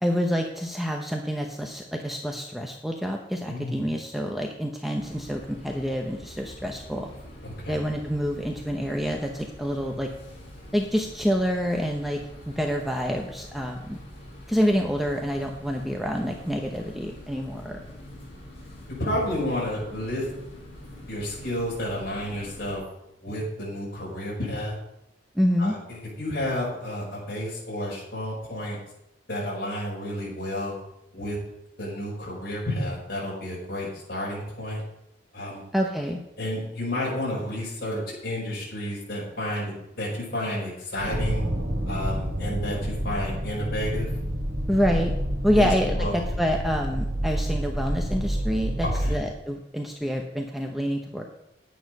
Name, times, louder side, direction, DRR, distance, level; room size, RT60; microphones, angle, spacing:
voice 1, 0.0-7.1 7.7-10.1 10.7-12.2 12.5-14.0 14.5-17.8 25.3-25.7 35.7-36.2 44.7-45.1 45.4-51.2, equal, ahead, 1 dB, 0.8 m, -27 dB
voice 2, 3.5-3.8 7.4-7.8 19.0-20.2 21.1-22.8 23.2-24.7 25.6-28.8 29.3-30.8 31.1-31.4 31.8-34.8 35.3-35.6 36.4-41.4 41.9-44.1 45.5-45.7 46.0-46.1 48.8-49.1, left 1 dB, 60° left, -6 dB, 5.1 m, -31 dB
sound 1, 5.0-22.7, left 1 dB, 35° left, 4.4 m, -45 dB
sound 2, 41.0-49.3, equal, 70° right, 3.2 m, -28 dB
10.0 x 9.3 x 5.3 m, 0.83 s
head